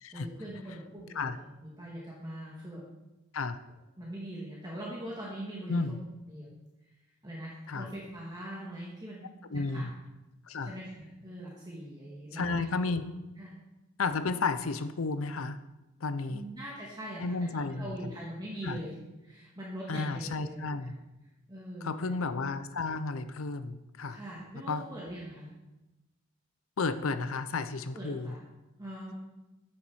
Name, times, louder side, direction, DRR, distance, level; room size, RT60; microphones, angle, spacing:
voice 1, 0.1-2.8 4.0-6.0 6.3-6.5 7.2-9.9 10.6-12.9 13.4-13.5 16.3-17.5 17.7-18.9 19.2-20.9 21.5-22.2 24.1-25.5 27.9-28.5 28.8-29.1, right 1 dB, 20° right, -6 dB, 2.1 m, -42 dB
voice 2, 9.5-9.9 10.5-10.7 12.3-13.1 14.0-15.6 16.0-16.4 17.2-17.9 18.6-18.8 19.9-20.9 21.8-24.2 24.7-24.8 26.8-28.3, left 3 dB, 80° left, 12 dB, 0.7 m, -32 dB
9.2 x 7.2 x 6.3 m, 1.0 s
head